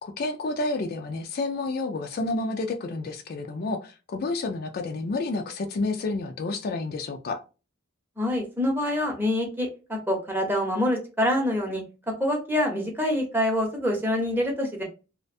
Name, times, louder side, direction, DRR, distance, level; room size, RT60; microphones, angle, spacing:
voice 1, 0.0-7.4, left 3 dB, 50° left, 5 dB, 0.4 m, -30 dB
voice 2, 8.2-11.8 12.2-14.8, left 1 dB, 10° right, 1 dB, 0.7 m, -26 dB
2.4 x 2.1 x 2.6 m, 0.31 s
head